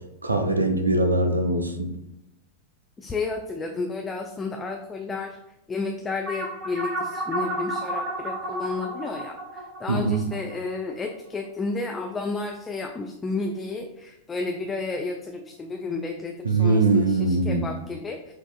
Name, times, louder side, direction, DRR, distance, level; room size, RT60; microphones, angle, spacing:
voice 1, 0.2-2.0 9.9-10.2 16.4-17.7, right 3 dB, 80° right, 6 dB, 0.4 m, -22 dB
voice 2, 3.0-5.4 5.7-18.3, left 3 dB, 15° left, 2 dB, 0.4 m, -31 dB
sound 1, 6.3-11.1, right 1 dB, 35° right, 0.8 m, -32 dB
5.9 x 2.4 x 2.4 m, 0.88 s
figure-of-eight pair, 90°, 0 cm